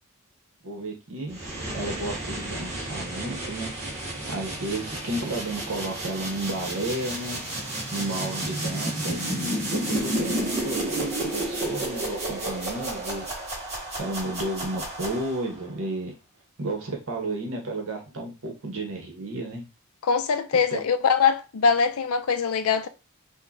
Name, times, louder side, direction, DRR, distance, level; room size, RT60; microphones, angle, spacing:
voice 1, 0.6-1.4 1.7-3.7 4.3-7.4 7.9-13.3 14.0-16.1 16.6-19.6 20.7-20.8, right 2 dB, 70° right, 1.1 m, -32 dB
sound 1, 1.3-15.6, right 1 dB, 30° right, 1.6 m, -31 dB
voice 2, 20.0-22.9, left 6 dB, 85° left, 0.5 m, -22 dB
5.4 x 2.2 x 2.6 m
head